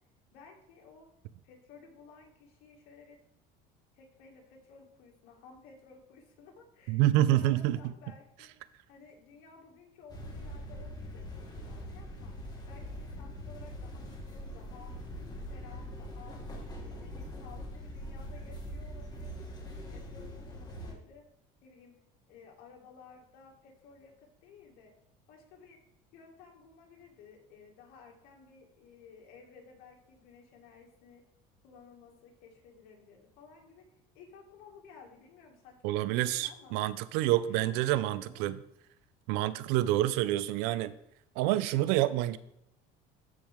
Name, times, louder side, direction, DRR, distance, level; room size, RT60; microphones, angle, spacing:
voice 1, 0.3-1.1 1.4-3.2 3.9-8.5 8.9-12.3 12.7-14.9 15.3-16.4 16.8-19.5 19.9-21.3 21.6-22.0 22.3-24.9 25.3-25.8 26.1-31.2 31.6-36.8 37.5-38.5, left 5 dB, 65° left, 0 dB, 2.2 m, -55 dB
voice 2, 6.9-7.8 35.8-38.6 39.3-40.9 41.4-42.4, right 14 dB, 80° right, 16 dB, 0.5 m, -27 dB
sound 1, 10.1-20.9, equal, 25° left, 2.0 m, -42 dB
13.5 x 4.6 x 3.6 m, 0.80 s
cardioid pair, 120°, 17 cm